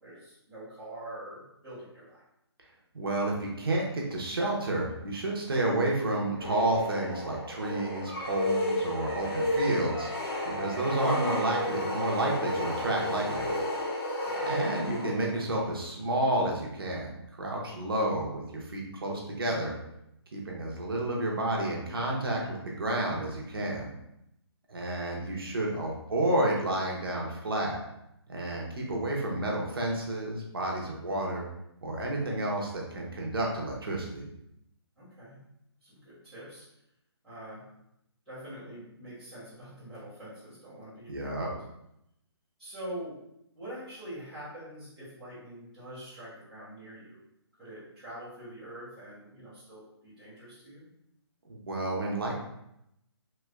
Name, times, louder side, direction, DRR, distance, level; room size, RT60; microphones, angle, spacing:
voice 1, 0.0-2.2 14.2-14.5 35.0-35.4 35.8-36.6 37.2-37.6 38.3-41.6 42.6-43.2 43.6-47.2 47.6-50.9, right 1 dB, ahead, -19 dB, 0.6 m, -44 dB
voice 2, 2.9-10.1 10.4-13.5 14.4-19.8 20.3-23.9 24.7-27.8 28.3-31.5 31.8-34.3 41.1-41.5 51.5-52.3, right 1 dB, 55° right, -1 dB, 0.8 m, -30 dB
sound 1, 6.4-15.5, left 1 dB, 60° left, 1.2 m, -32 dB
3.2 x 3.0 x 2.3 m, 0.80 s
hypercardioid pair, 180°, 14 cm